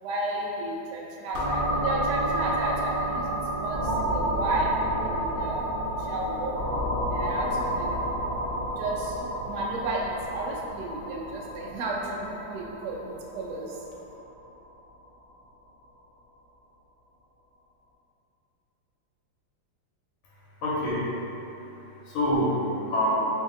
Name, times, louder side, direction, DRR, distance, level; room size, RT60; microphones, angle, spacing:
voice 1, 0.0-6.5 7.1-8.1 8.8-9.2 9.5-13.8, right 2 dB, 85° right, -3 dB, 0.9 m, -32 dB
sound 1, 1.3-14.9, right 1 dB, 40° right, 1.0 m, -30 dB
voice 2, 20.6-23.1, equal, 90° left, -7 dB, 1.6 m, -28 dB
3.3 x 2.7 x 3.7 m, 2.9 s
omnidirectional pair, 2.3 m